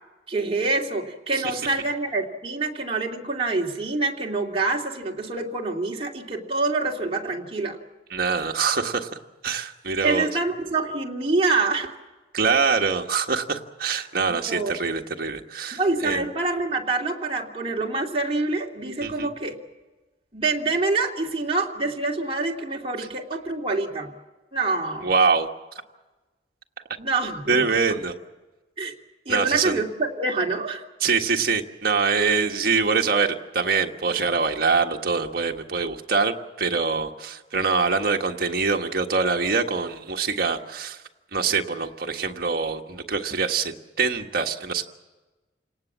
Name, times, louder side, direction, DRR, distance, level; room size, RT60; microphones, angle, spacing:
voice 1, 0.3-7.8 10.0-11.9 14.5-14.7 15.7-19.6 20.3-24.1 24.5-25.1 27.0-27.7 28.8-28.9 29.3-30.8 32.3-32.4, right 3 dB, 30° right, 0 dB, 2.5 m, -26 dB
voice 2, 8.1-9.1 9.4-10.3 12.3-16.3 19.0-19.3 23.0-23.1 25.0-25.5 27.5-28.1 29.3-29.8 31.0-41.0 41.3-44.8, right 5 dB, 50° right, 3 dB, 1.6 m, -24 dB
29.0 x 18.5 x 7.4 m, 1.2 s
head